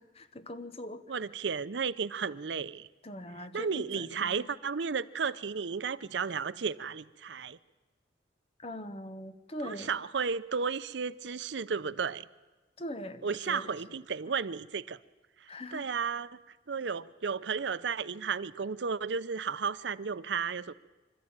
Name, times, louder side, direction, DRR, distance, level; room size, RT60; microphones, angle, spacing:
voice 1, 0.0-1.0 3.0-4.5 8.6-10.0 12.8-13.8 15.5-15.9, left 1 dB, 35° left, 10 dB, 1.0 m, -42 dB
voice 2, 1.1-2.9 3.5-7.6 9.6-12.2 13.2-15.0 15.4-16.3 16.7-20.7, right 5 dB, 80° right, 16 dB, 0.6 m, -33 dB
25.5 x 13.0 x 8.9 m, 1.2 s
head